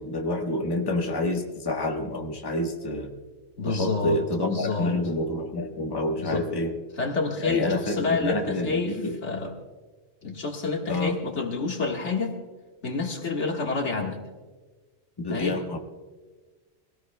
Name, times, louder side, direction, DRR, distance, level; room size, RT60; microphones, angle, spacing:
voice 1, 0.0-3.1 3.6-6.7 7.4-9.1 10.9-11.1 15.2-15.8, left 1 dB, 20° left, 2 dB, 1.2 m, -28 dB
voice 2, 3.6-4.2 4.5-5.0 6.2-6.5 7.0-9.5 10.2-12.4 12.8-14.2 15.3-15.6, left 4 dB, 75° left, 2 dB, 1.9 m, -28 dB
22.0 x 17.0 x 2.2 m, 1.3 s
omnidirectional pair, 1.2 m